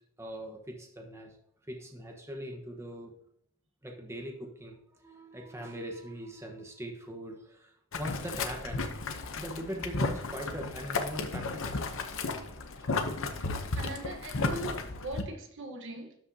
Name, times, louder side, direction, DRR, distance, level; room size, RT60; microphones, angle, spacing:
voice 1, 0.2-1.4 1.7-3.1 3.8-8.9 9.4-11.8, equal, 10° right, 1.2 m, -41 dB
Boiling, 7.9-15.2, left 3 dB, 60° left, 0.9 m, -34 dB
voice 2, 13.7-16.2, right 2 dB, 55° right, 1.2 m, -41 dB
12.5 x 5.3 x 2.8 m
head